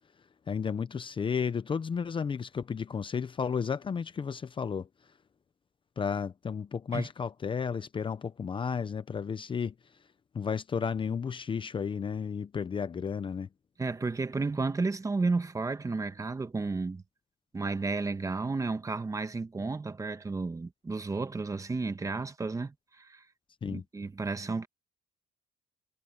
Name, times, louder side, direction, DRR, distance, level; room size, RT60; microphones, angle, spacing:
voice 1, 0.5-4.9 6.0-9.7 10.3-13.5 23.6-23.8, left 6 dB, 30° left, 0.8 m, -33 dB
voice 2, 13.8-17.0 17.5-23.2 23.7-24.7, right 3 dB, 20° right, 1.4 m, -32 dB
cardioid pair, 110°, 17 cm